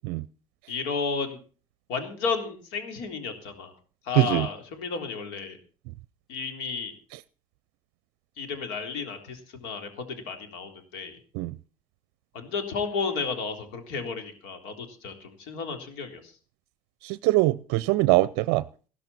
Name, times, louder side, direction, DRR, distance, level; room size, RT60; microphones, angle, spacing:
voice 1, 0.7-1.4 1.9-3.7 4.1-5.6 6.3-6.9 8.4-11.2 12.3-16.2, left 5 dB, 70° left, 6 dB, 3.7 m, -32 dB
voice 2, 4.1-4.5 7.1-7.2 11.3-11.6 17.0-18.6, right 19 dB, 65° right, 17 dB, 0.6 m, -23 dB
15.5 x 13.5 x 4.3 m, 0.38 s
hypercardioid pair, 70°, 19 cm